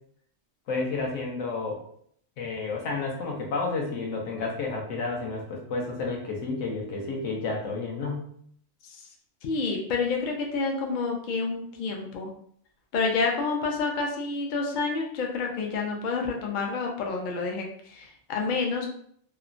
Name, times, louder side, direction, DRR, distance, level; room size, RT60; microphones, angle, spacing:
voice 1, 0.7-1.8 2.4-8.3, left 3 dB, 80° left, 0 dB, 1.0 m, -31 dB
voice 2, 9.4-12.3 12.9-18.9, left 4 dB, 60° left, 1 dB, 0.5 m, -29 dB
3.0 x 2.0 x 2.4 m, 0.64 s
omnidirectional pair, 1.3 m